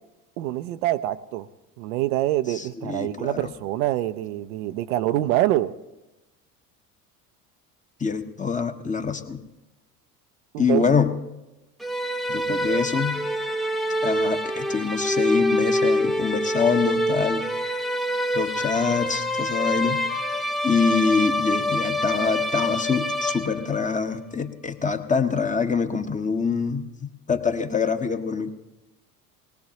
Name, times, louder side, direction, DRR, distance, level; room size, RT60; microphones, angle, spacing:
voice 1, 0.4-1.5 1.8-5.7 10.5-10.8, right 15 dB, 65° right, 12 dB, 0.6 m, -25 dB
voice 2, 2.5-3.5 8.0-9.4 10.6-11.1 12.3-13.2 14.0-17.4 18.3-20.0 20.6-26.9 27.3-28.5, left 5 dB, 15° left, 7 dB, 1.0 m, -25 dB
sound 1, 11.8-23.9, left 1 dB, ahead, 0.6 m, -26 dB
20.5 x 19.0 x 2.8 m, 0.99 s
figure-of-eight pair, 65°, 46 cm